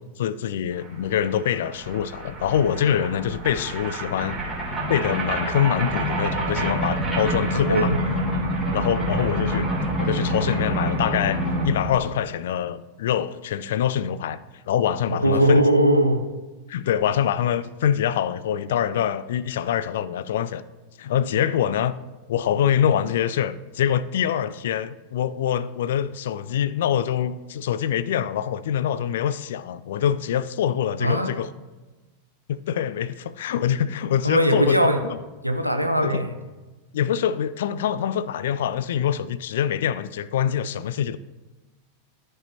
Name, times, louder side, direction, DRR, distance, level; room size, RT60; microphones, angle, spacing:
voice 1, 0.2-4.4 4.9-7.9 8.7-9.7 10.0-14.4 14.7-15.6 16.7-20.6 21.0-21.9 22.3-31.5 32.5-34.8 35.0-35.2 36.0-36.2 36.9-41.2, left 9 dB, 60° left, 0.3 m, -24 dB
sound 1, 0.8-12.0, right 1 dB, 10° right, 2.8 m, -27 dB
voice 2, 7.7-8.0 15.1-16.2 31.0-31.3 34.2-35.0 35.4-36.3, right 1 dB, 90° right, 0.7 m, -20 dB
13.0 x 5.4 x 2.8 m
figure-of-eight pair, 90°, 0 cm